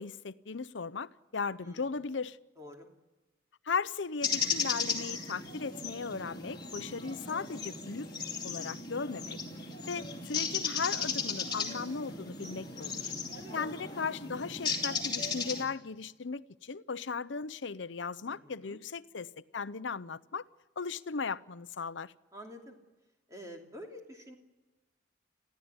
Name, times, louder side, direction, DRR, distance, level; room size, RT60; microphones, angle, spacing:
voice 1, 0.0-2.4 3.6-8.1 8.4-13.1 13.5-20.4 20.8-22.1, left 5 dB, 70° left, 0.7 m, -37 dB
voice 2, 1.6-2.0 2.6-2.9 12.1-12.6 13.3-13.6 18.3-18.8 22.3-22.8 23.3-24.4, equal, 15° right, 3.0 m, -49 dB
sound 1, 4.2-15.6, left 5 dB, 25° left, 2.8 m, -36 dB
28.0 x 15.5 x 9.8 m
head